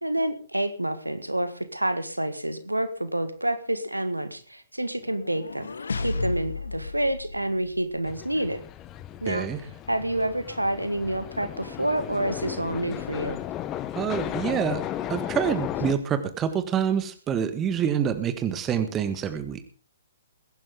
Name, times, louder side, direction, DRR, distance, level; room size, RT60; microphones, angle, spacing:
voice 1, 0.0-5.7 5.9-8.6 9.2-9.5 9.9-13.4, right 1 dB, 90° right, 11 dB, 1.7 m, -28 dB
sound 1, 5.0-8.2, left 3 dB, 70° left, 1.2 m, -33 dB
sound 2, 8.0-15.9, left 12 dB, 25° left, 1.0 m, -35 dB
voice 2, 9.3-9.6 14.0-14.8 15.1-19.6, right 8 dB, 20° right, 10 dB, 1.7 m, -27 dB
21.5 x 11.0 x 3.8 m, 0.37 s
figure-of-eight pair, 120°, 0 cm